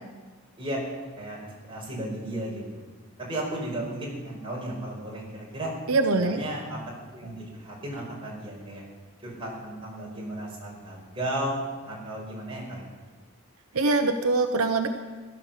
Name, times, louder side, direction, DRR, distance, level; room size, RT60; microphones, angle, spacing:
voice 1, 0.6-2.9 3.2-5.7 6.1-6.8 7.1-8.8 9.2-11.6 11.9-12.9, right 1 dB, 25° right, -4 dB, 5.3 m, -34 dB
voice 2, 5.9-6.4 13.7-14.9, right 3 dB, 80° right, 6 dB, 0.9 m, -23 dB
16.0 x 11.5 x 7.5 m, 1.4 s
head